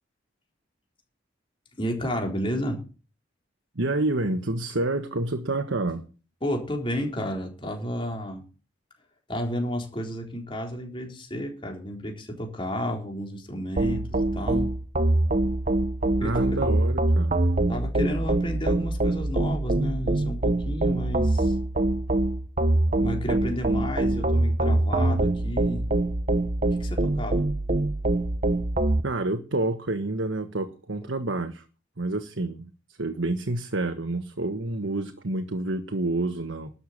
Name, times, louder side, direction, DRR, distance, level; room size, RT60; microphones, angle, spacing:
voice 1, 1.8-2.8 6.4-8.4 9.3-14.7 16.2-16.6 17.7-21.5 23.0-25.9 26.8-27.5 31.0-31.1, equal, 25° left, 2 dB, 3.8 m, -32 dB
voice 2, 3.7-6.1 16.2-17.4 29.0-31.6 32.0-32.7 33.0-36.7, right 2 dB, 85° right, 7 dB, 1.4 m, -28 dB
sound 1, 13.8-29.0, right 2 dB, 40° right, 0.9 m, -24 dB
13.0 x 7.0 x 8.7 m, 0.35 s
head